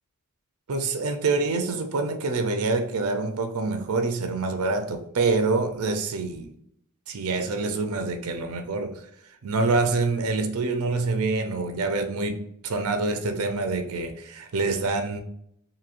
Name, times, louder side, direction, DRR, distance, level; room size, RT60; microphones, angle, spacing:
voice 1, 0.7-6.5 7.1-9.1 9.4-15.2, right 3 dB, 80° right, 0.5 m, -26 dB
3.0 x 2.6 x 2.5 m
head